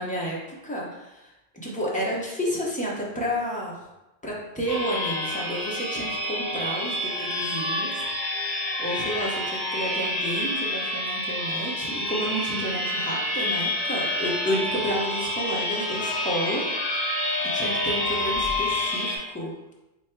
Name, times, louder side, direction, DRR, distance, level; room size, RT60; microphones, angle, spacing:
voice 1, 0.0-3.9 4.2-8.1 8.8-16.7 17.4-19.5, equal, 10° left, -4 dB, 0.6 m, -31 dB
sound 1, 4.7-19.2, left 1 dB, 50° left, 1.0 m, -28 dB
3.5 x 2.2 x 4.3 m, 0.96 s
omnidirectional pair, 1.1 m